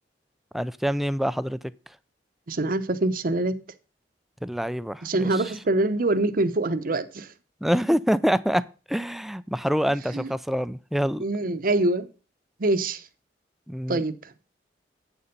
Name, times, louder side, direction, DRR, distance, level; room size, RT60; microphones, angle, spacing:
voice 1, 0.5-1.6 4.4-5.5 7.6-8.6 8.9-11.2 13.7-14.0, equal, ahead, 0.4 m, -26 dB
voice 2, 2.5-3.6 5.0-7.3 10.1-10.3 11.2-12.1 12.6-13.0 13.9-14.1, right 2 dB, 50° right, 0.8 m, -24 dB
8.7 x 6.9 x 5.2 m
head